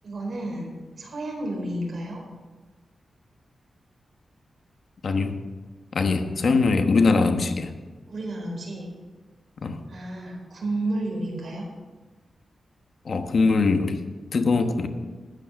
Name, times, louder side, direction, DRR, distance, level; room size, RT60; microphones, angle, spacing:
voice 1, 0.0-2.2 8.1-8.9 9.9-11.7, right 1 dB, 60° right, 0 dB, 4.4 m, -31 dB
voice 2, 5.0-5.4 5.9-7.7 9.6-9.8 13.0-14.0 14.3-14.9, left 4 dB, 60° left, 7 dB, 1.1 m, -22 dB
13.0 x 9.2 x 6.2 m, 1.3 s
wide cardioid pair, 105°, 0 cm